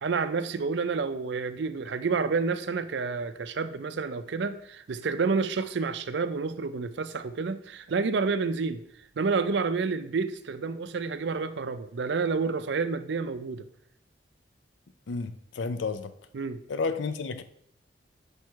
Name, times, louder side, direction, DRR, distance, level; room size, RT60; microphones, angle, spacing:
voice 1, 0.0-8.8 9.2-13.7 16.3-16.6, right 4 dB, 65° right, 0.4 m, -29 dB
voice 2, 15.1-16.1 16.7-17.4, left 4 dB, 75° left, 0.5 m, -31 dB
5.2 x 4.5 x 4.7 m
head